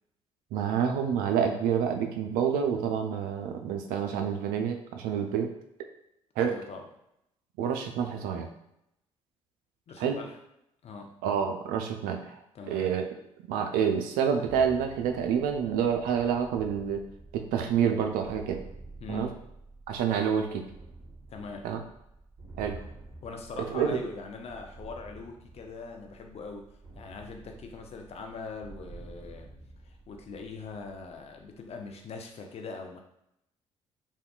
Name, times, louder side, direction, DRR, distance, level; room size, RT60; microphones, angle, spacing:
voice 1, 0.5-5.5 6.4-6.5 7.6-8.5 10.0-10.2 11.2-12.3 12.7-13.0 13.4-17.0 17.3-18.6 19.1-19.3 19.9-20.6 21.6-21.8 22.6-22.8 23.7-24.0, right 7 dB, 65° right, 5 dB, 0.4 m, -28 dB
voice 2, 6.4-6.9 9.9-10.4 10.8-11.2 12.5-12.9 19.0-19.4 21.3-21.7 23.2-29.5 29.8-33.0, left 4 dB, 40° left, 3 dB, 0.5 m, -42 dB
sound 1, 14.4-32.1, right 2 dB, 25° right, 1.2 m, -50 dB
3.5 x 2.3 x 2.3 m, 0.80 s
figure-of-eight pair, 45°, 16 cm